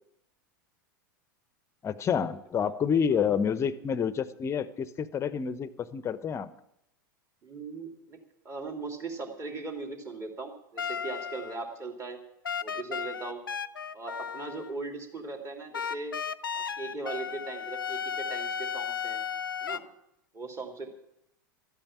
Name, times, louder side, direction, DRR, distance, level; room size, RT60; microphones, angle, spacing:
voice 1, 1.8-6.5, left 7 dB, 25° left, 16 dB, 0.8 m, -28 dB
voice 2, 7.4-8.2 8.4-12.2 12.6-13.4 13.9-16.2 16.5-19.2 19.6-19.8 20.3-21.0, right 3 dB, 25° right, 3 dB, 2.9 m, -39 dB
sound 1, 10.8-11.8 12.4-14.7 15.7-19.8, left 7 dB, 85° left, 0.5 m, -34 dB
12.5 x 8.8 x 8.6 m, 0.81 s
figure-of-eight pair, 90°, 11 cm